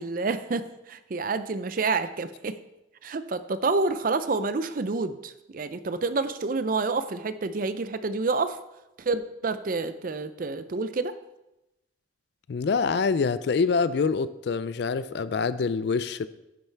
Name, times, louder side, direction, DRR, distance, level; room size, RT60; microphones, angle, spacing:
voice 1, 0.0-2.6 3.0-8.6 9.0-11.1, right 3 dB, 45° right, 12 dB, 0.4 m, -28 dB
voice 2, 12.5-16.3, left 5 dB, 60° left, 15 dB, 0.3 m, -25 dB
10.0 x 5.5 x 4.5 m, 0.93 s
head